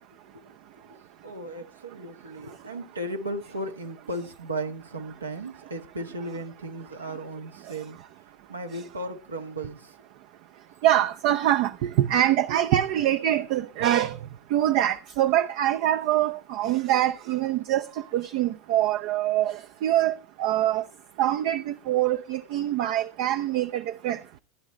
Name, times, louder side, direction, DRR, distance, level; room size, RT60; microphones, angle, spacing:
voice 1, 1.2-8.0 8.5-9.9, right 1 dB, 85° right, 1.4 m, -36 dB
voice 2, 10.8-14.2 14.5-17.9 18.1-20.8 21.2-24.2, right 12 dB, 55° right, 0.6 m, -24 dB
16.0 x 10.5 x 3.2 m
figure-of-eight pair, 80°, 0 cm